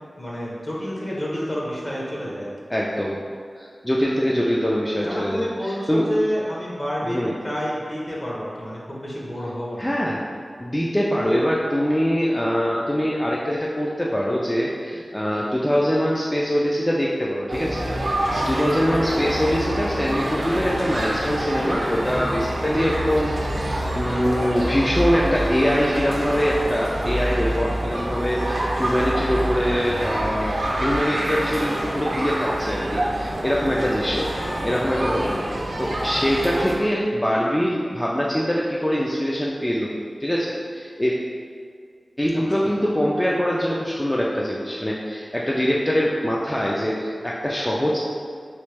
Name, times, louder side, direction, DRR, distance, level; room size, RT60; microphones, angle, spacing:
voice 1, 0.2-2.5 5.0-7.2 7.4-9.9 18.5-18.6 42.6-42.7, equal, 35° left, -5 dB, 0.8 m, -29 dB
voice 2, 2.7-3.2 3.6-6.1 7.0-7.3 9.8-10.2 10.6-34.3 34.6-35.4 35.8-39.9 40.2-41.1 42.2-48.0, equal, 15° left, -4 dB, 0.3 m, -23 dB
sound 1, 17.5-36.8, right 1 dB, 80° right, 0.6 m, -26 dB
3.1 x 3.1 x 3.3 m, 2.1 s
wide cardioid pair, 65°, 0 cm